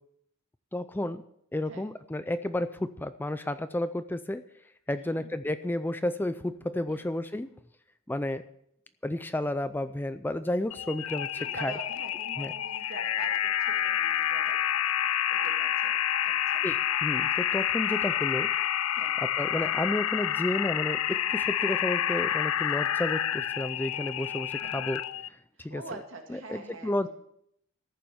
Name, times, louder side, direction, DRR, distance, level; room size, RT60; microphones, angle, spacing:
voice 1, 0.7-1.2 1.5-4.4 4.9-7.5 8.1-8.4 9.0-11.7 12.4-12.5 16.6-18.5 19.2-25.0 25.6-25.8 26.3-27.1, left 1 dB, 10° left, 12 dB, 0.4 m, -31 dB
voice 2, 4.9-5.3 6.9-7.1 11.3-14.6 15.3-15.9 16.2-16.6 18.9-19.1 24.6-24.8 25.6-27.1, right 3 dB, 65° right, 2 dB, 2.4 m, -45 dB
sound 1, 10.7-25.3, left 10 dB, 85° left, 0.5 m, -29 dB
14.0 x 7.0 x 7.8 m, 0.73 s
head